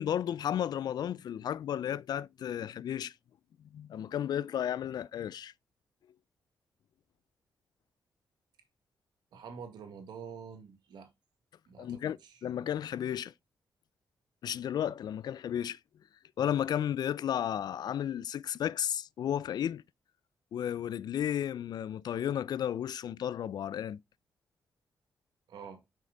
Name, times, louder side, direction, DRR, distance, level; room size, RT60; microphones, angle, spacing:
voice 1, 0.0-3.1 3.7-5.5 11.8-13.3 14.4-15.8 16.4-19.8 20.5-24.0, left 10 dB, 70° left, 0.4 m, -33 dB
voice 2, 9.3-11.1 11.7-12.4 25.5-25.8, right 6 dB, 90° right, 1.9 m, -47 dB
5.9 x 5.3 x 3.9 m
cardioid pair, 80°, 7 cm